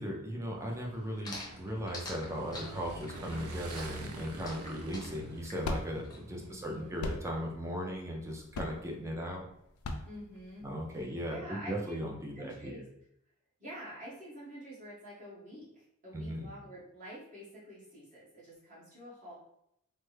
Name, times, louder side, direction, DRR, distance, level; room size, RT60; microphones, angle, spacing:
voice 1, 0.0-9.5 10.6-12.9 16.1-16.5, equal, 15° right, -1 dB, 0.5 m, -38 dB
Motorcycle / Engine, 0.5-7.5, right 2 dB, 80° right, 0.5 m, -46 dB
sound 1, 1.2-6.2, left 2 dB, 20° left, 0.7 m, -45 dB
sound 2, 4.8-11.0, left 2 dB, 75° left, 0.4 m, -40 dB
voice 2, 6.3-7.0 10.1-10.7 11.3-12.0 12.3-12.9 13.6-19.3, equal, 35° right, -8 dB, 1.5 m, -48 dB
3.3 x 2.1 x 3.2 m, 0.76 s
head